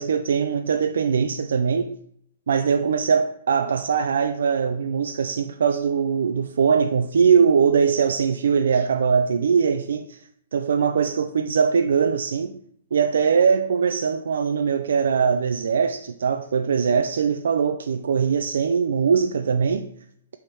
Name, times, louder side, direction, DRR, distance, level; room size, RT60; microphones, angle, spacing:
voice 1, 0.0-2.0 2.5-10.2 10.5-12.6 12.9-19.9, right 6 dB, 75° right, 0.4 m, -21 dB
7.4 x 3.5 x 5.4 m
hypercardioid pair, 180°, 0 cm